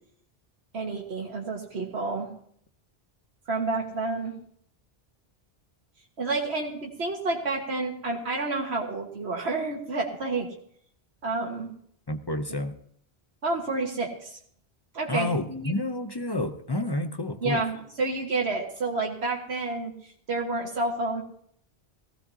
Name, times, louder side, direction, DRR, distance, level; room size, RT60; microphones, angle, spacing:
voice 1, 0.7-2.3 3.5-4.3 6.2-10.5 11.2-11.7 13.4-14.4 14.9-15.8 17.4-21.2, right 3 dB, 85° right, 0 dB, 1.8 m, -29 dB
voice 2, 12.1-12.8 15.1-17.6, left 1 dB, 30° left, 8 dB, 0.6 m, -29 dB
18.0 x 15.5 x 2.8 m, 0.64 s
omnidirectional pair, 1.1 m